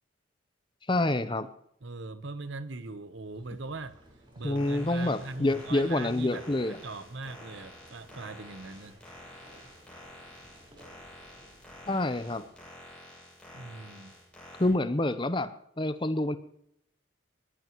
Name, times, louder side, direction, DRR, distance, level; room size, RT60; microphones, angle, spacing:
voice 1, 0.9-1.5 4.4-6.8 11.9-12.4 14.6-15.5 15.8-16.4, left 2 dB, 25° left, 11 dB, 0.7 m, -27 dB
voice 2, 1.8-4.0 4.4-9.0 13.5-14.1, right 3 dB, 65° right, 12 dB, 1.0 m, -40 dB
sound 1, 3.0-13.0, right 1 dB, 25° right, 4.7 m, -57 dB
sound 2, 4.5-14.7, left 1 dB, 5° left, 7.3 m, -50 dB
22.0 x 16.5 x 3.1 m, 0.77 s
head